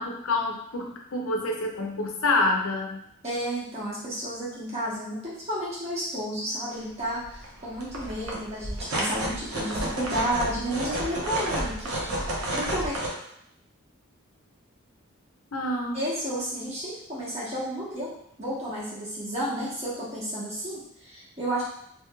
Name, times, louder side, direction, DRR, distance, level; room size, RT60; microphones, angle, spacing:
voice 1, 0.0-3.0 15.5-16.0, left 2 dB, 75° left, 1 dB, 0.6 m, -27 dB
voice 2, 3.2-13.0 15.9-18.1 18.4-21.6, right 1 dB, 30° right, -8 dB, 1.1 m, -32 dB
sound 1, 6.7-6.8 7.2-7.5 7.7-13.1, right 1 dB, 85° right, 0.7 m, -31 dB
3.1 x 3.0 x 2.2 m, 0.73 s
head